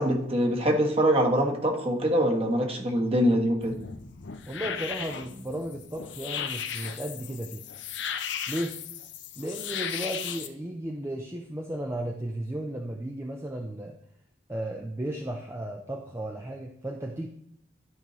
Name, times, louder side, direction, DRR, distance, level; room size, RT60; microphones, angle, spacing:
voice 1, 0.0-3.8, equal, 30° right, 2 dB, 1.3 m, -24 dB
sound 1, 3.6-10.5, left 8 dB, 80° left, 0.7 m, -36 dB
voice 2, 4.5-7.6 8.5-8.8 9.4-14.0 14.5-17.3, right 1 dB, 15° right, 2 dB, 0.6 m, -34 dB
12.5 x 5.3 x 3.1 m, 0.72 s
head